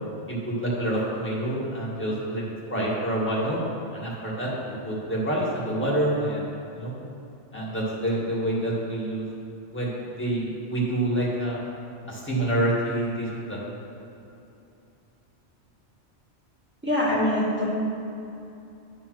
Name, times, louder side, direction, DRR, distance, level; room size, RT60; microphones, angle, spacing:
voice 1, 0.3-3.6 3.9-6.5 6.7-6.9 7.5-9.3 9.7-11.6 12.1-13.6, right 1 dB, 10° left, -7 dB, 1.9 m, -27 dB
voice 2, 16.8-17.7, left 1 dB, 10° right, -8 dB, 2.0 m, -23 dB
10.5 x 3.9 x 6.0 m, 2.8 s
omnidirectional pair, 1.2 m